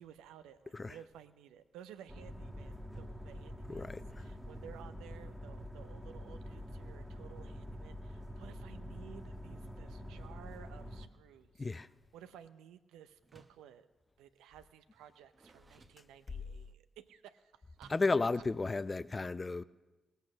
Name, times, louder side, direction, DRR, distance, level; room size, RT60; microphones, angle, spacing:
voice 1, 0.0-11.7 12.1-13.9 14.2-17.9 18.3-18.4, right 9 dB, 75° right, 0.6 m, -55 dB
sound 1, 2.1-11.1, equal, ahead, 1.6 m, -46 dB
voice 2, 3.7-4.2 11.6-11.9 17.9-19.6, left 3 dB, 30° left, 0.5 m, -33 dB
Door, 13.2-13.7 14.9-16.6 17.8-18.3, right 3 dB, 35° right, 1.0 m, -62 dB
17.5 x 8.1 x 6.3 m
hypercardioid pair, 40°, 0 cm